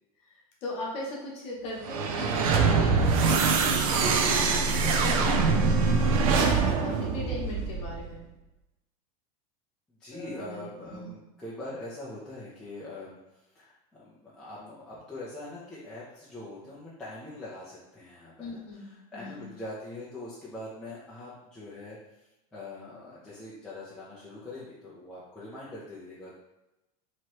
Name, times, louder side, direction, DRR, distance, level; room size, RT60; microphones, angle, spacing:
voice 1, 0.2-8.2 10.1-11.2 18.4-19.5, left 1 dB, 30° left, -3 dB, 1.0 m, -39 dB
sound 1, 1.8-8.1, right 4 dB, 65° right, 0.5 m, -24 dB
voice 2, 10.0-13.2 13.5-22.0 22.5-26.4, left 2 dB, 5° left, -9 dB, 0.5 m, -43 dB
3.0 x 3.0 x 4.5 m, 0.93 s
supercardioid pair, 175°, 19 cm